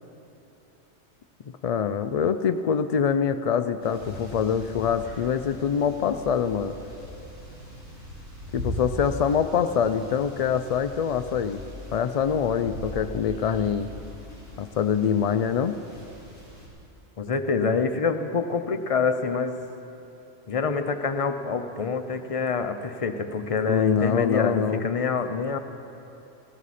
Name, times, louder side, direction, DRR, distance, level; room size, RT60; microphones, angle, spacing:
voice 1, 1.6-6.7 8.5-11.6 11.9-13.9 14.6-15.8 23.7-24.9, left 7 dB, 75° left, 10 dB, 0.3 m, -25 dB
sound 1, 3.8-16.7, equal, 70° right, 4.2 m, -40 dB
voice 2, 17.2-19.6 20.5-25.6, left 5 dB, 35° left, 7 dB, 0.6 m, -26 dB
17.5 x 17.0 x 4.2 m, 2.9 s
omnidirectional pair, 1.2 m